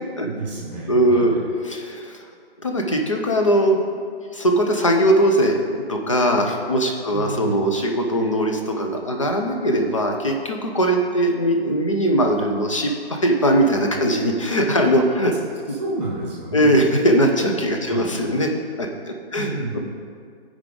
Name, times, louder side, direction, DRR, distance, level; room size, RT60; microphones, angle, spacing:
voice 1, 0.2-1.4 7.1-7.7 15.7-16.9 17.9-18.2 19.3-19.8, right 2 dB, 10° right, -3 dB, 1.1 m, -30 dB
voice 2, 0.9-1.4 1.6-2.2 2.6-3.8 4.3-15.4 16.5-18.5 18.8-19.8, equal, 30° left, 2 dB, 0.6 m, -20 dB
13.5 x 4.9 x 3.8 m, 2.1 s
hypercardioid pair, 170°, 32 cm